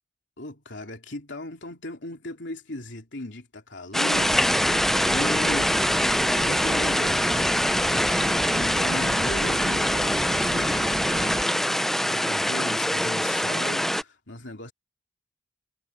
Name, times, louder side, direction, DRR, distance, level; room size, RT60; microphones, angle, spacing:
voice 1, 0.4-14.7, left 1 dB, 60° left, 3.4 m, -38 dB
sound 1, 3.9-14.0, equal, ahead, 0.4 m, -24 dB
sound 2, 4.1-11.4, right 1 dB, 15° right, 0.8 m, -32 dB
head